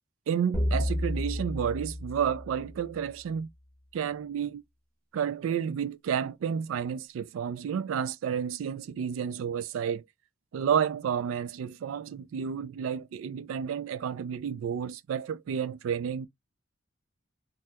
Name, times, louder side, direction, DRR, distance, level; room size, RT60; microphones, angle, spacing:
voice 1, 0.3-3.5 3.9-4.6 5.1-10.0 10.5-16.3, right 8 dB, 85° right, 0.3 m, -31 dB
sound 1, 0.5-3.0, left 1 dB, 5° left, 0.8 m, -31 dB
2.8 x 2.1 x 3.4 m
head